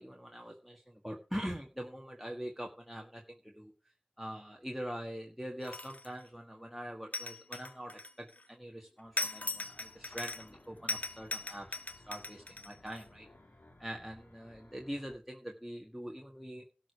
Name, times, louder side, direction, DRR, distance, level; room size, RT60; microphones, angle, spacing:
voice 1, 0.0-3.7 4.2-11.7 12.0-13.3 13.8-16.6, equal, 5° right, 1 dB, 1.8 m, -43 dB
sound 1, 5.6-6.2 7.1-8.4 9.2-10.6 10.9-13.0, left 3 dB, 50° left, 1.1 m, -39 dB
sound 2, 9.0-15.2, left 1 dB, 65° left, 2.2 m, -61 dB
13.0 x 5.0 x 8.2 m, 0.34 s
wide cardioid pair, 45°, 3 cm